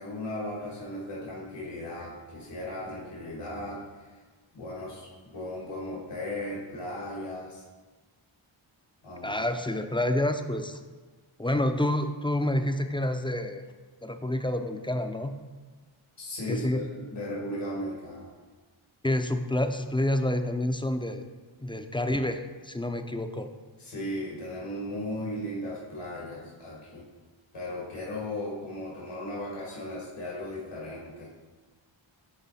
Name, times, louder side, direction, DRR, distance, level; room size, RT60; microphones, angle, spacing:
voice 1, 0.0-4.1 4.5-7.6 9.0-9.4 16.2-18.3 21.6-21.7 23.8-27.0 27.5-31.3, left 1 dB, 90° left, -6 dB, 2.1 m, -36 dB
voice 2, 9.2-10.8 11.4-13.6 14.0-15.3 16.5-16.8 19.0-21.2 21.6-23.5, left 1 dB, 10° left, 7 dB, 0.4 m, -28 dB
9.7 x 4.0 x 4.1 m, 1.4 s
wide cardioid pair, 75°, 50 cm